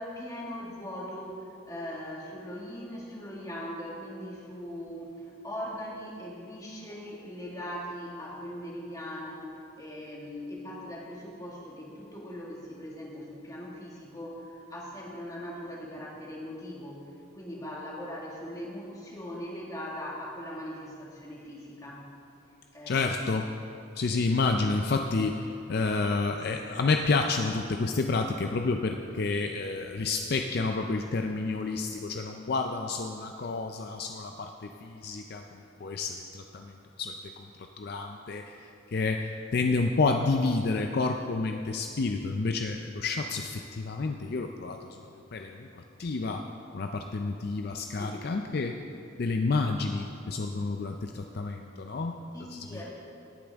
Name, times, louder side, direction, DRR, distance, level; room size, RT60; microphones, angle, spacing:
voice 1, 0.0-17.0 17.3-22.0 22.7-23.1 47.9-48.2 52.3-52.9, equal, 20° left, -4 dB, 1.8 m, -40 dB
voice 2, 22.9-23.5 24.0-36.7 37.0-37.5 37.8-38.5 38.9-44.8 45.3-45.7 46.0-46.4 46.7-48.8 49.2-52.2 52.5-52.6, left 3 dB, 50° left, 4 dB, 0.4 m, -29 dB
18.0 x 8.6 x 3.5 m, 2.7 s
head